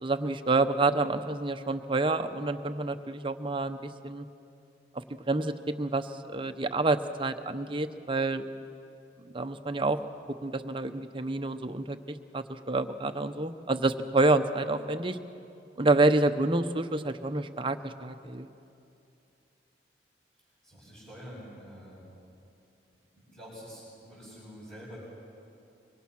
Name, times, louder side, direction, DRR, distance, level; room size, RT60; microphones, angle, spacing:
voice 1, 0.0-4.3 4.9-8.4 9.3-10.0 10.4-15.2 15.8-18.5, right 2 dB, 30° right, 8 dB, 0.9 m, -28 dB
voice 2, 20.6-22.0 23.1-25.0, equal, 5° left, -10 dB, 7.2 m, -47 dB
25.5 x 24.0 x 6.0 m, 2.7 s
head